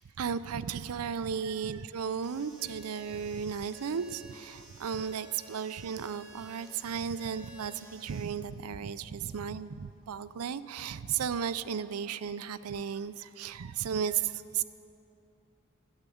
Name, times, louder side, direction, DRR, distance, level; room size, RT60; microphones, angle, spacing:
voice 1, 0.2-14.6, right 7 dB, 90° right, 14 dB, 0.5 m, -34 dB
sound 1, 2.2-8.2, right 2 dB, 5° right, 2.4 m, -53 dB
13.5 x 7.4 x 9.9 m, 2.7 s
head